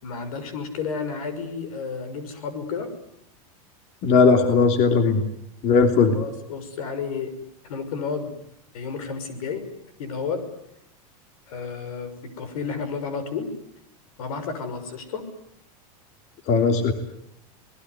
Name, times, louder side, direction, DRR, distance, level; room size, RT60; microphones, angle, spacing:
voice 1, 0.0-2.9 6.1-7.3 7.6-8.3 8.7-9.6 10.0-10.4 11.5-13.5 14.2-15.2, left 5 dB, 80° left, 11 dB, 6.2 m, -31 dB
voice 2, 4.0-5.2 5.6-6.2 16.5-16.9, left 4 dB, 40° left, 6 dB, 3.0 m, -18 dB
26.0 x 20.5 x 9.7 m, 0.75 s
supercardioid pair, 150°, 18 cm